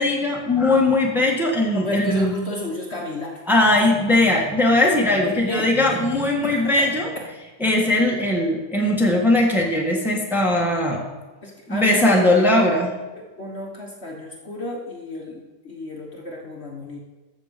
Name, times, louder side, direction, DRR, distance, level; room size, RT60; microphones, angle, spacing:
voice 1, 0.0-2.3 3.5-7.1 7.6-11.0 11.7-12.9, left 1 dB, ahead, -1 dB, 1.6 m, -19 dB
voice 2, 1.7-3.4 5.2-6.0 6.4-6.9 11.4-12.7 13.1-17.0, left 2 dB, 45° left, 0 dB, 1.5 m, -32 dB
14.0 x 6.5 x 5.2 m, 1.2 s
omnidirectional pair, 1.7 m